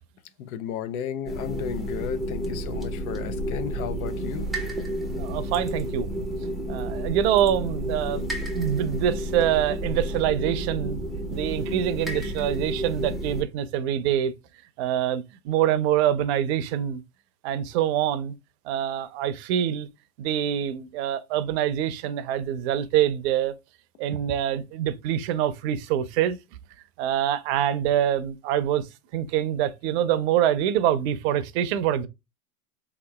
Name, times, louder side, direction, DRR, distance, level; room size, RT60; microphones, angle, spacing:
voice 1, 0.4-4.5, left 9 dB, 65° left, 0.7 m, -33 dB
sound 1, 1.3-13.4, right 1 dB, ahead, 0.6 m, -31 dB
voice 2, 5.1-6.1 6.7-11.0 11.3-14.3 14.8-17.0 17.4-18.3 18.7-19.9 20.2-23.5 24.0-26.4 27.0-28.9 29.1-32.1, right 10 dB, 45° right, 0.6 m, -25 dB
3.6 x 2.9 x 2.2 m
hypercardioid pair, 125°, 45 cm